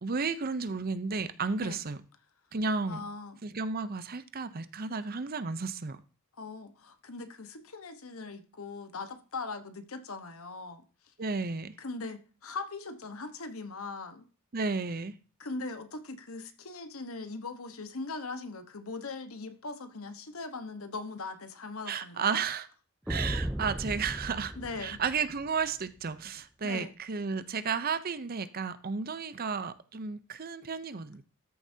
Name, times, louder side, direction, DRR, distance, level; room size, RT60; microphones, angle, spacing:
voice 1, 0.0-2.0 2.5-3.0 3.4-6.0 11.2-11.7 14.5-15.1 21.9-22.7 23.1-24.5 24.8-31.2, right 5 dB, 45° right, 13 dB, 0.6 m, -33 dB
voice 2, 2.9-3.4 6.4-10.8 11.8-14.3 15.4-22.4 24.5-25.0 26.6-26.9, left 3 dB, 80° left, 8 dB, 1.2 m, -40 dB
sound 1, 23.1-25.7, equal, 5° right, 0.5 m, -36 dB
13.5 x 7.1 x 2.8 m, 0.37 s
head